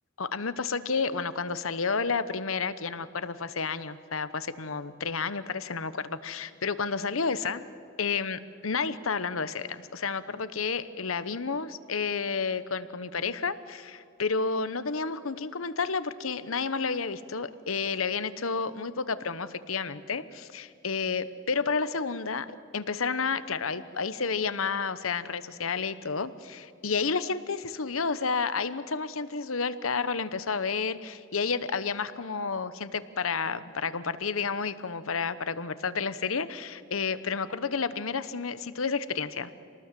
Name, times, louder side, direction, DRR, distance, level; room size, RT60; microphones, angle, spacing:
voice 1, 0.2-7.6 8.0-39.5, left 5 dB, 80° left, 13 dB, 1.0 m, -31 dB
27.0 x 19.0 x 7.6 m, 2.5 s
head